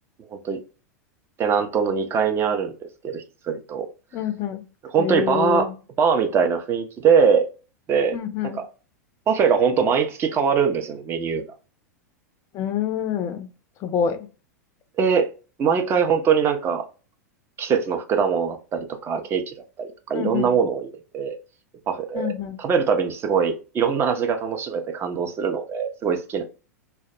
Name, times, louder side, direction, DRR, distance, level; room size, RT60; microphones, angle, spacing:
voice 1, 1.4-3.9 4.9-5.7 6.0-7.5 7.9-8.1 8.5-8.6 9.3-11.4 15.0-15.3 15.6-16.9 17.6-21.4 21.9-26.4, right 6 dB, 25° right, 0.5 m, -22 dB
voice 2, 4.1-4.7 5.0-5.7 8.1-8.6 12.5-13.5 13.8-14.2 20.1-20.6 22.1-22.6, left 9 dB, 30° left, 0.4 m, -26 dB
2.2 x 2.1 x 2.6 m
figure-of-eight pair, 90°, 9 cm